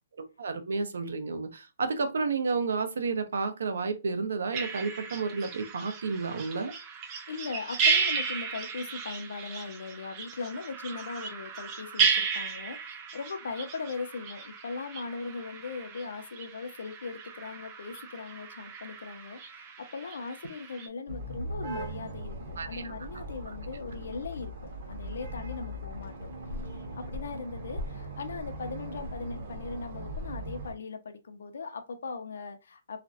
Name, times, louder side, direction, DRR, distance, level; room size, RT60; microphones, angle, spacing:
voice 1, 0.2-6.7 22.6-22.8 23.5-23.6, right 4 dB, 80° right, 0.5 m, -31 dB
sound 1, 4.5-20.9, right 5 dB, 25° right, 0.4 m, -34 dB
voice 2, 7.3-26.3 27.0-33.0, left 4 dB, 75° left, 0.5 m, -39 dB
sound 2, 21.1-30.7, right 1 dB, 50° right, 0.8 m, -39 dB
2.4 x 2.0 x 2.5 m
hypercardioid pair, 170°, 0 cm